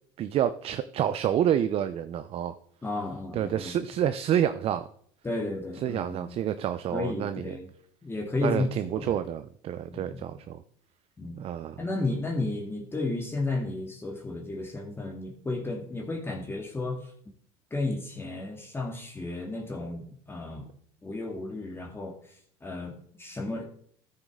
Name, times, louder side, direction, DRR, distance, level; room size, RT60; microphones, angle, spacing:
voice 1, 0.2-2.5 3.3-4.9 5.8-7.5 8.4-10.6 11.4-11.8, right 10 dB, 45° right, 11 dB, 0.5 m, -28 dB
voice 2, 2.8-3.8 5.2-6.4 6.9-7.7 8.0-8.7 9.0-9.1 9.9-10.3 11.2-11.4 11.8-17.1 17.7-20.7 21.0-23.6, left 2 dB, 15° left, 1 dB, 1.9 m, -33 dB
13.5 x 6.6 x 3.7 m, 0.63 s
supercardioid pair, 95°, 13 cm